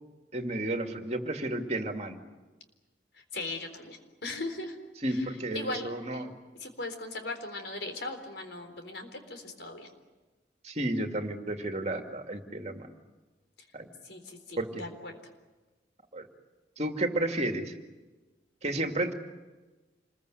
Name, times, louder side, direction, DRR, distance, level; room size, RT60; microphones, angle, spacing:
voice 1, 0.3-2.2 5.0-6.4 10.6-12.9 13.7-13.9 14.6-14.8 16.1-16.3 16.8-17.7 18.6-19.1, right 1 dB, 40° right, 4 dB, 2.4 m, -32 dB
voice 2, 3.3-4.8 5.1-5.2 5.5-5.9 6.6-9.9 14.0-15.2, left 2 dB, 75° left, 6 dB, 4.0 m, -38 dB
27.0 x 21.5 x 8.1 m, 1.2 s
head